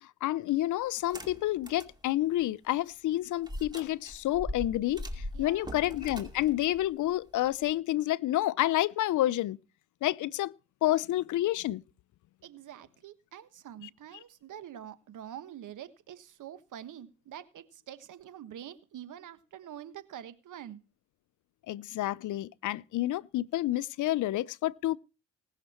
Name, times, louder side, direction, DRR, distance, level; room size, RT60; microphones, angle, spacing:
voice 1, 0.2-9.6 10.0-10.5 10.8-11.8 21.7-25.0, left 14 dB, 65° left, 0.6 m, -29 dB
sound 1, 1.0-2.0 2.4-2.5 3.4-7.7, left 1 dB, 15° right, 2.4 m, -41 dB
voice 2, 5.3-5.8 12.4-20.8, right 10 dB, 65° right, 1.4 m, -46 dB
19.0 x 6.7 x 4.3 m
supercardioid pair, 60°, 33 cm